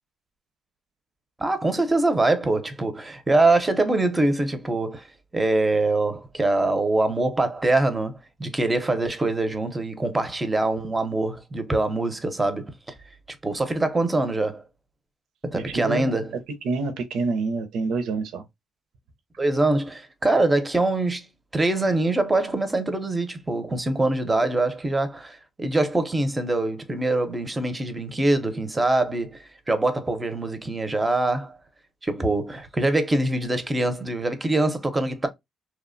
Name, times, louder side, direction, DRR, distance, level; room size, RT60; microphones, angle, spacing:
voice 1, 1.4-5.1 5.3-12.9 13.4-14.6 15.4-16.3 19.4-21.3 21.5-31.6 32.0-35.3, right 2 dB, 15° right, 0.5 m, -24 dB
voice 2, 15.5-16.1 16.6-18.4, right 4 dB, 85° right, 0.5 m, -27 dB
2.8 x 2.0 x 2.5 m
cardioid pair, 110°, 0 cm